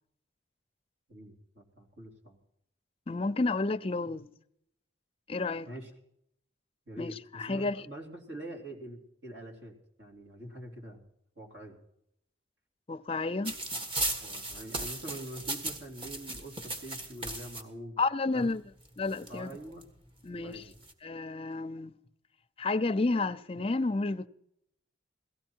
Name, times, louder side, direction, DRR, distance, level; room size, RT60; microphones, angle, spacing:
voice 1, 1.1-2.4 5.7-5.9 6.9-11.1 11.4-11.8 14.2-18.0 18.3-18.6 19.3-19.9 20.3-20.7, right 1 dB, 65° right, 3.3 m, -45 dB
voice 2, 3.1-4.3 5.3-5.7 7.0-7.9 12.9-13.6 18.0-18.6 19.0-19.5 20.2-20.6 21.0-21.9 22.6-24.3, left 3 dB, 30° left, 0.5 m, -31 dB
sound 1, 13.5-17.6 18.5-18.6 18.9-19.8 20.5-20.9, right 2 dB, 30° right, 1.6 m, -36 dB
17.5 x 14.5 x 4.5 m
head